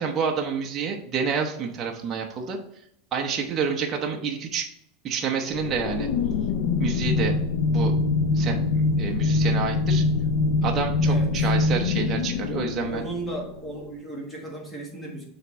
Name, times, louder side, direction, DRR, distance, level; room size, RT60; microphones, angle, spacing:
voice 1, 0.0-2.6 3.1-4.7 5.0-6.1 6.8-7.4 7.7-7.9 8.3-10.0 10.6-13.1, right 6 dB, 25° right, 1 dB, 0.8 m, -28 dB
sound 1, 5.5-13.8, left 3 dB, 55° left, 0.5 m, -24 dB
voice 2, 11.0-11.5 12.8-15.3, right 1 dB, 10° left, -1 dB, 1.5 m, -35 dB
8.8 x 3.5 x 3.1 m, 0.72 s
supercardioid pair, 160°, 0 cm